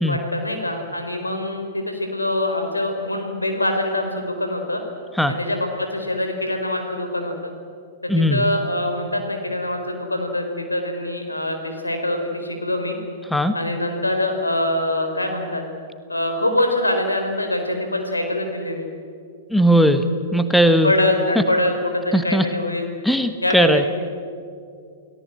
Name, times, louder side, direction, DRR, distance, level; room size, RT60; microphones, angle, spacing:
voice 1, 0.1-4.8 5.3-7.5 8.0-13.0 13.5-15.6 16.1-18.9 20.8-22.9 23.4-23.9, left 1 dB, 85° left, 5 dB, 4.2 m, -24 dB
voice 2, 8.1-8.4 13.3-13.6 19.5-20.0 20.3-20.9 22.1-22.4 23.0-23.8, equal, ahead, 9 dB, 1.3 m, -17 dB
29.0 x 18.0 x 8.0 m, 2.3 s
figure-of-eight pair, 105°, 0 cm